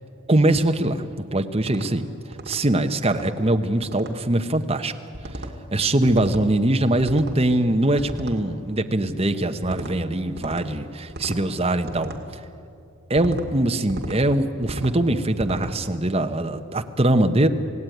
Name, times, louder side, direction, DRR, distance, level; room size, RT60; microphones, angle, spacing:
voice 1, 0.3-2.0 2.5-4.9 5.3-5.4 5.7-12.1 13.1-17.5, right 1 dB, 25° right, 6 dB, 1.0 m, -22 dB
sound 1, 1.6-1.9 2.3-2.6 3.1-3.3 3.8-4.1 5.1-5.5 6.1-6.5 7.0-7.4 8.0-8.4 9.6-9.9 10.4-10.7 11.1-11.4 11.9-12.2 13.2-13.5 13.9-14.2 14.6-15.0 15.4-15.7, right 1 dB, 50° right, 2.2 m, -35 dB
27.5 x 17.5 x 9.3 m, 2.6 s
head